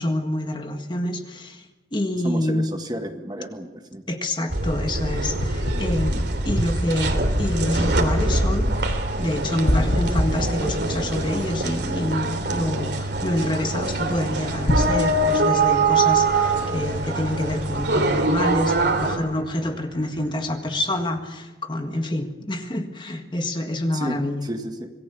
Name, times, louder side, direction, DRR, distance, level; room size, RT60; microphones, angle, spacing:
voice 1, 0.0-1.7 1.9-2.7 4.1-24.5, left 1 dB, 25° left, 5 dB, 1.7 m, -27 dB
voice 2, 2.2-4.0 23.9-24.9, equal, 25° right, 5 dB, 1.8 m, -32 dB
sound 1, 4.5-19.2, right 2 dB, 80° right, 3.2 m, -24 dB
sound 2, 5.3-7.2 9.7-12.2 14.7-14.9, left 1 dB, 55° left, 1.7 m, -25 dB
sound 3, 8.8-21.2, right 1 dB, 60° right, 3.3 m, -43 dB
27.0 x 19.5 x 7.0 m, 1.1 s
head